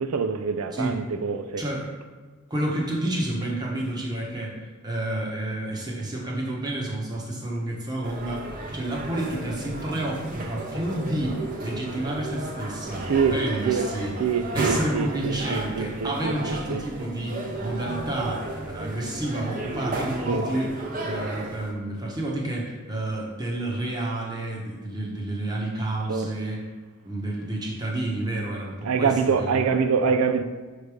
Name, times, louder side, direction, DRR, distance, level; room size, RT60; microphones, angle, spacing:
voice 1, 0.0-1.6 13.0-13.4 13.6-13.8 14.2-16.8 20.3-20.5 26.1-26.3 28.8-30.4, right 6 dB, 70° right, 0.4 m, -25 dB
voice 2, 1.6-1.9 2.5-4.6 4.8-8.4 8.7-14.1 14.5-18.4 18.7-20.7 21.0-26.6 27.0-29.6, right 1 dB, 20° right, 1.0 m, -30 dB
sound 1, 8.0-21.7, right 1 dB, 40° right, 0.8 m, -33 dB
6.5 x 3.3 x 4.8 m
head